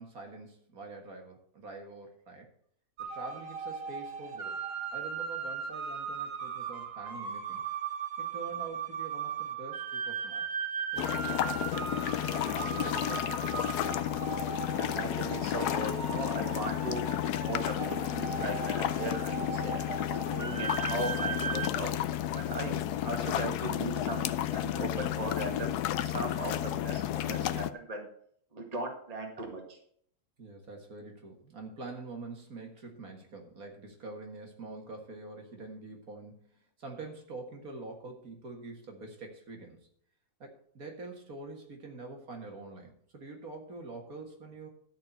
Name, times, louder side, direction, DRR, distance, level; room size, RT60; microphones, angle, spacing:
voice 1, 0.0-2.5 3.0-4.6 4.9-7.7 8.2-10.5 10.9-13.7 21.7-21.8 30.4-39.9 40.4-44.7, right 3 dB, 65° right, 2 dB, 2.2 m, -45 dB
sound 1, 3.0-21.7, right 6 dB, 45° right, 1.2 m, -38 dB
sound 2, 11.0-27.7, left 12 dB, 80° left, 1.2 m, -32 dB
voice 2, 14.7-17.1 17.4-19.9 20.3-21.9 22.3-28.1 28.5-29.8, right 2 dB, 25° right, 2 dB, 1.8 m, -38 dB
12.5 x 4.4 x 8.0 m, 0.63 s
omnidirectional pair, 1.7 m